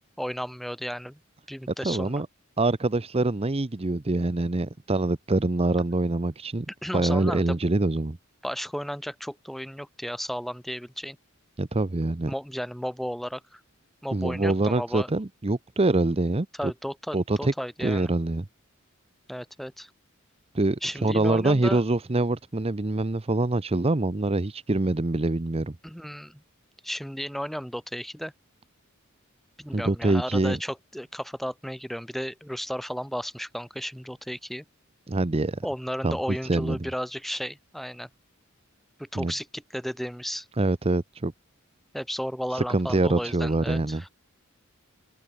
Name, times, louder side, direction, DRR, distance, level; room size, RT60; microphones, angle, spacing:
voice 1, 0.2-1.2 1.5-2.2 6.8-7.6 8.4-11.2 12.3-13.6 14.0-15.1 16.6-18.1 19.3-19.9 20.8-21.8 25.8-26.4 26.8-28.3 29.6-34.6 35.6-38.1 39.0-40.5 41.9-44.1, equal, ahead, 4.3 m, -34 dB
voice 2, 1.8-2.3 2.6-6.7 6.9-8.2 11.6-12.3 14.1-16.7 17.1-17.5 17.8-18.4 20.5-25.7 29.7-30.6 35.1-35.7 36.0-36.2 36.5-36.9 39.1-39.3 40.6-41.3 42.5-44.0, right 2 dB, 30° right, 0.8 m, -25 dB
head